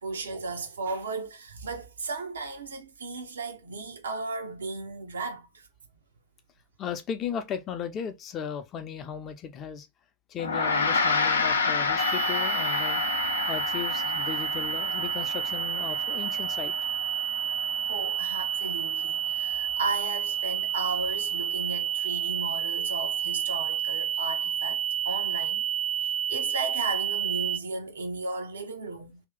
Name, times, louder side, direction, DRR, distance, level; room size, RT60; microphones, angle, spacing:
voice 1, 0.0-5.7 17.8-25.6 26.0-29.2, right 3 dB, 70° right, 0.8 m, -35 dB
voice 2, 6.8-9.9 10.3-13.0 13.5-16.7, left 7 dB, 30° left, 0.7 m, -36 dB
Gong, 10.4-20.0, left 4 dB, 70° left, 0.7 m, -30 dB
sound 1, 12.0-27.6, right 9 dB, 35° right, 0.3 m, -30 dB
3.0 x 2.8 x 3.5 m
figure-of-eight pair, 90°, 0 cm